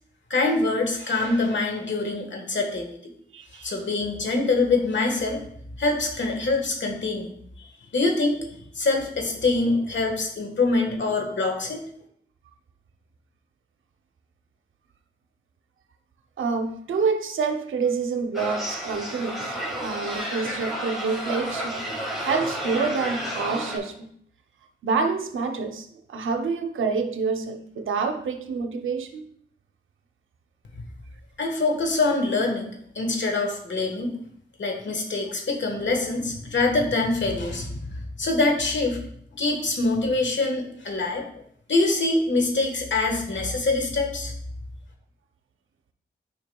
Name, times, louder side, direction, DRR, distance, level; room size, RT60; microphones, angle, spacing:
voice 1, 0.3-3.1 3.6-5.4 5.8-7.3 7.9-8.5 8.7-11.8 30.7-30.8 31.4-32.7 32.9-34.1 34.6-39.0 39.3-41.2 41.7-44.3, left 3 dB, 65° left, 2 dB, 1.4 m, -24 dB
voice 2, 3.3-3.8 16.4-24.1 24.8-29.2, right 5 dB, 90° right, 6 dB, 0.6 m, -27 dB
sound 1, 18.3-23.8, equal, ahead, 2.3 m, -31 dB
8.7 x 4.8 x 2.3 m, 0.66 s
cardioid pair, 50°, 20 cm